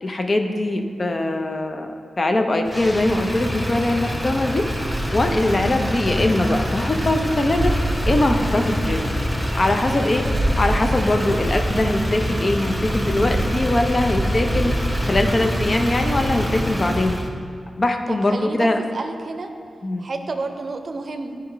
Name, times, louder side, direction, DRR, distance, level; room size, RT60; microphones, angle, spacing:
voice 1, 0.0-4.6 5.1-7.7 8.0-9.0 9.5-10.3 10.6-14.8 15.0-17.2 17.8-18.8 19.8-20.0, left 2 dB, 45° left, 5 dB, 0.6 m, -21 dB
Motor vehicle (road), 2.7-17.3, equal, 10° left, 0.8 m, -24 dB
voice 2, 18.1-19.5 20.0-21.4, right 3 dB, 60° right, 6 dB, 0.5 m, -30 dB
9.7 x 3.4 x 4.5 m, 2.4 s
cardioid pair, 45°, 0 cm